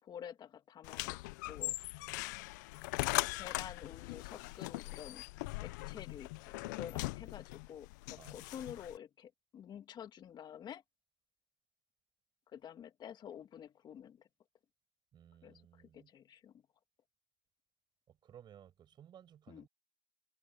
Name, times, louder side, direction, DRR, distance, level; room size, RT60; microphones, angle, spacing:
voice 1, 0.0-1.8 3.3-5.3 5.6-10.8 12.5-14.3 15.4-16.6 19.5-19.7, left 9 dB, 50° left, 2.2 m, -49 dB
sound 1, 0.8-9.0, left 22 dB, 85° left, 0.4 m, -40 dB
voice 2, 15.1-16.1 18.1-19.7, right 10 dB, 50° right, 6.0 m, -58 dB
supercardioid pair, 75°, 10 cm